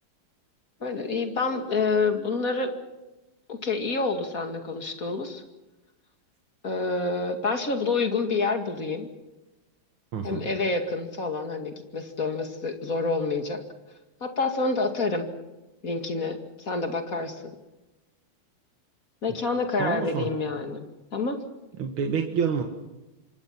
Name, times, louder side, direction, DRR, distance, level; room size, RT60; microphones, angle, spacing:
voice 1, 0.8-2.7 3.5-5.4 6.6-9.1 10.2-13.6 14.2-15.3 15.8-17.4 19.2-20.9 21.1-21.4, left 3 dB, 45° left, 5 dB, 2.7 m, -28 dB
voice 2, 10.1-10.5 19.8-20.3 21.8-22.6, right 6 dB, 90° right, 4 dB, 2.4 m, -28 dB
27.0 x 24.0 x 5.9 m, 1.0 s
omnidirectional pair, 2.2 m